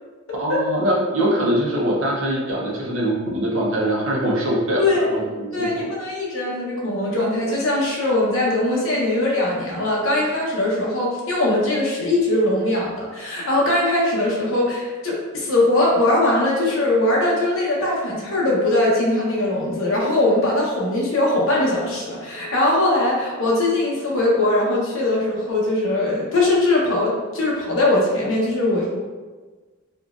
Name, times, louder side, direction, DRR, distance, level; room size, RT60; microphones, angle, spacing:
voice 1, 0.4-5.9, right 1 dB, 65° right, -3 dB, 0.7 m, -23 dB
voice 2, 5.5-29.0, left 2 dB, 65° left, -4 dB, 0.8 m, -21 dB
3.8 x 2.3 x 2.4 m, 1.3 s
head